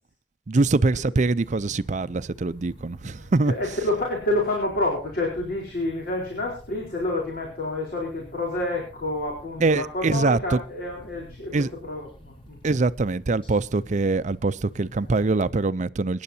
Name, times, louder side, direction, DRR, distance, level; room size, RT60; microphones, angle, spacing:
voice 1, 0.5-3.5 9.6-10.6 11.5-11.7 12.6-16.2, right 3 dB, 40° right, 0.5 m, -23 dB
sound 1, 1.4-15.5, equal, 30° left, 3.8 m, -48 dB
voice 2, 3.2-12.6 15.0-15.5, left 1 dB, 55° left, 4.3 m, -29 dB
25.5 x 10.5 x 2.8 m
head